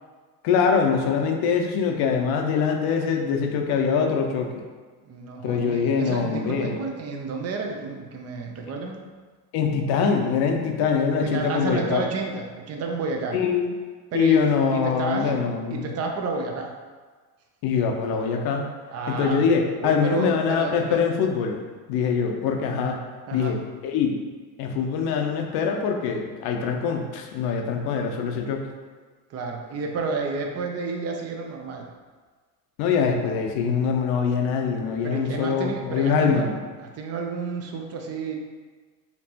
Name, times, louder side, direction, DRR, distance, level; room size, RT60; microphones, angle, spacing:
voice 1, 0.4-4.5 5.4-6.7 9.5-12.0 13.3-13.7 14.1-15.9 17.6-18.7 19.1-21.6 21.9-23.0 23.3-23.6 23.8-24.2 24.6-28.6 32.8-36.5, left 6 dB, 50° left, 3 dB, 0.7 m, -23 dB
voice 2, 5.1-9.0 11.2-13.4 14.1-16.7 18.9-19.5 19.8-21.0 23.3-23.6 29.3-31.9 35.0-36.6 36.8-38.3, right 4 dB, 30° right, 2 dB, 0.6 m, -31 dB
4.4 x 2.7 x 2.8 m, 1.4 s
hypercardioid pair, 85°, 49 cm